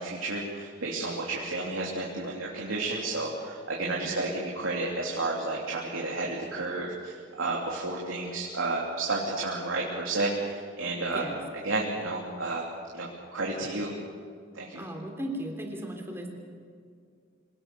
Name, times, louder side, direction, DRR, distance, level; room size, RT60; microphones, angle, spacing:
voice 1, 0.0-11.2 11.6-12.6 12.9-13.9 14.5-14.8, right 2 dB, 90° right, -3 dB, 3.2 m, -31 dB
voice 2, 3.8-4.2 11.1-11.4 14.7-16.3, right 1 dB, 10° right, 2 dB, 3.2 m, -37 dB
26.0 x 18.5 x 7.0 m, 2.2 s
head